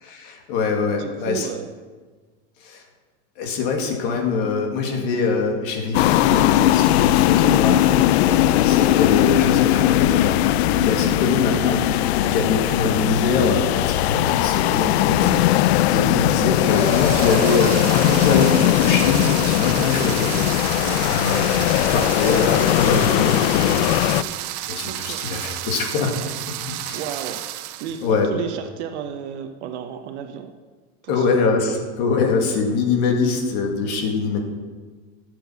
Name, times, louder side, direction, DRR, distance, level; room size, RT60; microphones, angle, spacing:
voice 1, 0.0-1.5 2.6-2.8 3.4-20.3 20.6-24.1 24.7-26.2 26.8-27.0 28.0-28.3 31.1-34.4, left 4 dB, 50° left, 2 dB, 2.2 m, -23 dB
voice 2, 1.0-1.7 8.2-8.7 11.1-11.3 15.1-15.5 20.7-21.1 24.8-25.3 26.9-27.5 27.8-30.5 31.0-31.4, right 8 dB, 80° right, 6 dB, 1.1 m, -33 dB
sound 1, 5.9-24.2, left 14 dB, 70° left, 0.5 m, -19 dB
sound 2, 16.4-28.1, right 14 dB, 40° right, 0.5 m, -32 dB
13.5 x 7.7 x 6.1 m, 1.4 s
supercardioid pair, 175°, 33 cm